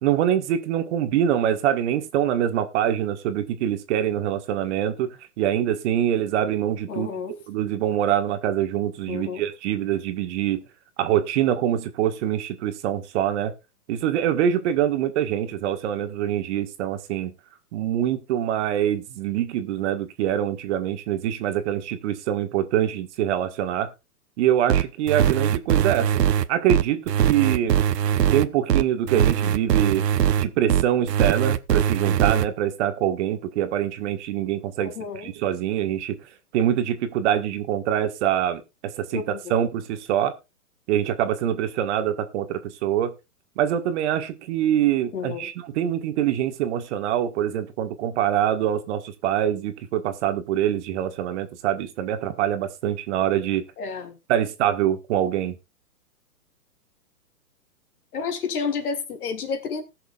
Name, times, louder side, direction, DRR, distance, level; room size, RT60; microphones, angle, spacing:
voice 1, 0.0-7.1 7.5-10.6 11.0-13.5 13.9-17.3 17.7-23.9 24.4-26.2 26.5-27.8 28.3-30.0 30.4-36.2 36.5-39.2 39.5-40.3 40.9-43.1 43.6-53.6 54.3-55.6, right 10 dB, 45° right, 1.7 m, -24 dB
voice 2, 6.9-7.3 9.1-9.4 34.8-35.3 39.1-39.5 45.1-45.5 53.8-54.2 58.1-59.8, left 5 dB, 65° left, 3.3 m, -30 dB
sound 1, 24.7-32.5, right 10 dB, 85° right, 0.9 m, -21 dB
19.5 x 6.7 x 2.4 m
hypercardioid pair, 135°, 47 cm